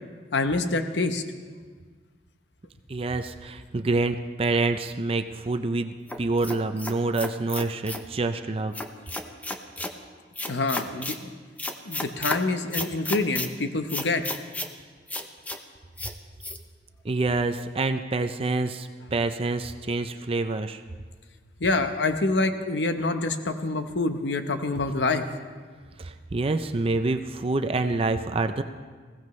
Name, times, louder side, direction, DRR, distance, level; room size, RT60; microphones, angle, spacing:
voice 1, 0.3-1.2 10.5-11.3 11.8-14.2 21.6-25.2, left 3 dB, 85° left, 8 dB, 0.9 m, -26 dB
voice 2, 2.9-8.7 17.0-20.8 26.0-28.6, right 3 dB, 35° right, 8 dB, 0.5 m, -27 dB
sound 1, 6.1-8.1 8.7-9.9 10.4-11.2 11.6-12.4 12.7-13.5 13.9-14.7 15.1-15.6 16.0-16.1 16.4-16.6, left 2 dB, 10° left, 0.7 m, -33 dB
20.5 x 16.0 x 3.2 m, 1.5 s
head